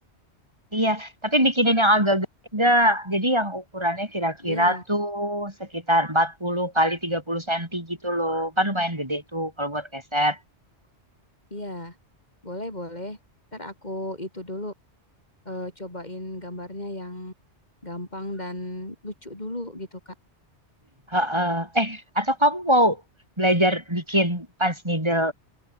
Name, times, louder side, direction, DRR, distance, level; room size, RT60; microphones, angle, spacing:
voice 1, 0.7-2.3 2.5-10.4 21.1-23.0 23.4-25.3, equal, 25° right, 5.3 m, -23 dB
voice 2, 4.4-4.8 11.5-11.9 12.4-13.2 13.5-14.7 15.5-17.3 17.8-20.1, left 1 dB, 40° left, 5.3 m, -35 dB
omnidirectional pair, 1.2 m